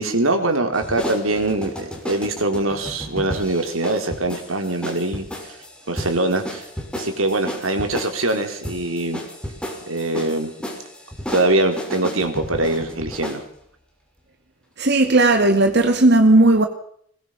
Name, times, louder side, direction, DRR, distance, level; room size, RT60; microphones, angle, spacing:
voice 1, 0.0-5.6 5.9-6.7 6.9-9.2 9.9-10.5 11.3-13.4, right 2 dB, 85° right, 6 dB, 4.3 m, -23 dB
sound 1, 0.7-13.5, equal, 5° left, 6.1 m, -33 dB
voice 2, 14.8-16.7, right 2 dB, 55° right, 5 dB, 2.3 m, -15 dB
21.5 x 21.5 x 6.0 m, 0.64 s
head